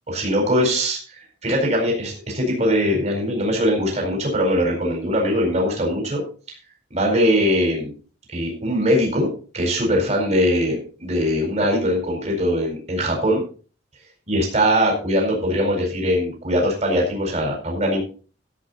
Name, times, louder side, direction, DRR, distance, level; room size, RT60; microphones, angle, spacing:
voice 1, 0.1-6.2 6.9-7.9 8.3-13.4 14.3-18.0, equal, 35° right, 0 dB, 4.5 m, -21 dB
14.5 x 8.2 x 4.2 m, 0.37 s
head